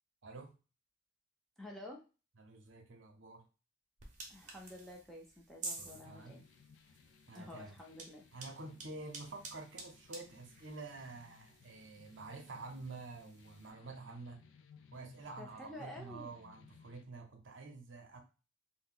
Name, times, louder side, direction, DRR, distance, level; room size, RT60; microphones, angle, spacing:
voice 1, 1.6-2.0 4.3-6.4 7.3-8.2 15.4-16.3, left 1 dB, ahead, -1 dB, 0.6 m, -50 dB
voice 2, 2.4-3.4 5.8-6.4 7.3-7.7 8.3-14.4 14.9-18.2, right 3 dB, 70° right, 3 dB, 0.7 m, -49 dB
sound 1, 4.0-13.7, right 3 dB, 40° right, 0.7 m, -52 dB
sound 2, 5.9-17.0, left 6 dB, 70° left, 0.3 m, -63 dB
2.7 x 2.1 x 3.7 m, 0.32 s
head